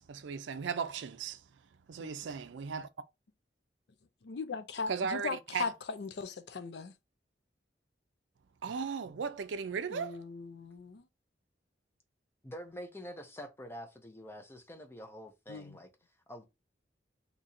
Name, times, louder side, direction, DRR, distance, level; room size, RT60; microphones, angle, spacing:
voice 1, 0.0-1.5 1.9-2.9 4.9-5.6 8.6-10.2, right 6 dB, 85° right, 0.4 m, -36 dB
voice 2, 4.2-6.9 9.9-11.1 15.5-15.8, left 4 dB, 65° left, 0.5 m, -39 dB
voice 3, 12.4-15.9 16.3-16.5, equal, 15° left, 0.6 m, -46 dB
2.8 x 2.6 x 4.2 m
head